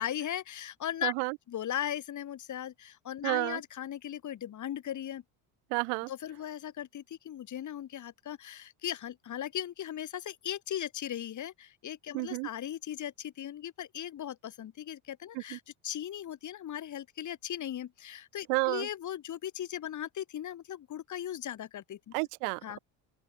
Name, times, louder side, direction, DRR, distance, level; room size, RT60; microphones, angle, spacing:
voice 1, 0.0-1.1 1.5-5.2 6.1-22.1 22.6-22.8, left 10 dB, 40° left, 1.1 m, -38 dB
voice 2, 1.0-1.4 3.2-3.6 5.7-6.1 12.1-12.5 15.3-15.6 18.5-18.9 22.1-22.8, right 40 dB or more, 80° right, 0.6 m, -31 dB
open air
supercardioid pair, 85°, 46 cm